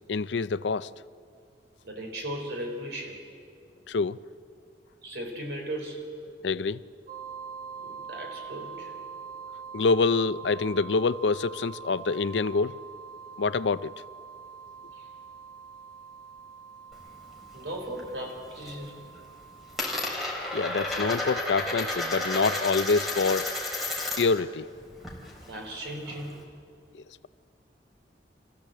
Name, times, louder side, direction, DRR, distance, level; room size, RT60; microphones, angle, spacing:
voice 1, 0.1-0.9 3.9-4.2 6.4-6.8 9.7-12.8 13.4-13.9 20.5-23.5 24.2-24.7, left 4 dB, 90° left, 0.5 m, -26 dB
voice 2, 1.8-3.2 5.0-6.0 7.8-8.9 14.9-15.1 17.5-19.1 25.3-26.4, right 1 dB, 75° right, 4.1 m, -37 dB
sound 1, 7.1-19.9, right 6 dB, 55° right, 1.6 m, -44 dB
Coin (dropping), 16.9-18.1 18.4-18.9 19.1-24.4 24.7-26.4, left 2 dB, ahead, 3.8 m, -32 dB
27.0 x 15.0 x 7.7 m
head